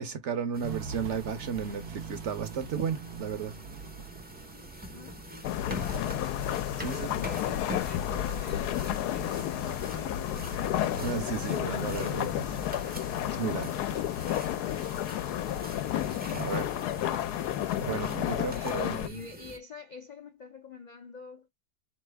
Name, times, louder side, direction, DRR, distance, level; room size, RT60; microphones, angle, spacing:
voice 1, 0.0-3.5 6.8-7.1 10.9-12.6 13.3-13.8 16.3-16.7 17.8-19.1, right 7 dB, 55° right, 0.9 m, -34 dB
sound 1, 0.5-19.6, equal, 15° right, 0.4 m, -44 dB
Walk footsteps, 0.6-13.0, right 6 dB, 80° right, 1.3 m, -46 dB
voice 2, 4.9-5.6 6.9-10.7 16.8-17.2 18.5-21.5, left 5 dB, 65° left, 0.4 m, -46 dB
sound 2, 5.4-19.1, left 12 dB, 85° left, 1.1 m, -31 dB
4.1 x 3.1 x 3.3 m
omnidirectional pair, 1.6 m